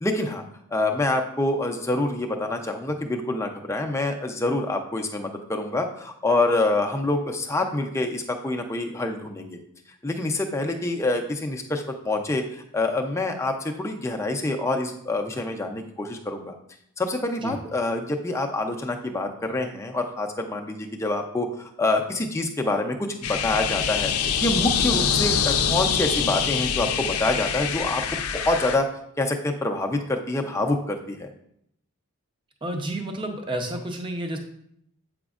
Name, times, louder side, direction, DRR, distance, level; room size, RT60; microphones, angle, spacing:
voice 1, 0.0-0.4 0.7-9.6 10.0-16.5 17.0-24.1 24.4-28.9 29.2-31.3, left 2 dB, 15° left, 3 dB, 0.5 m, -26 dB
sound 1, 23.2-28.8, left 7 dB, 75° left, 0.5 m, -25 dB
voice 2, 32.6-34.4, right 1 dB, 20° right, 4 dB, 0.6 m, -30 dB
7.9 x 5.0 x 2.4 m, 0.72 s
head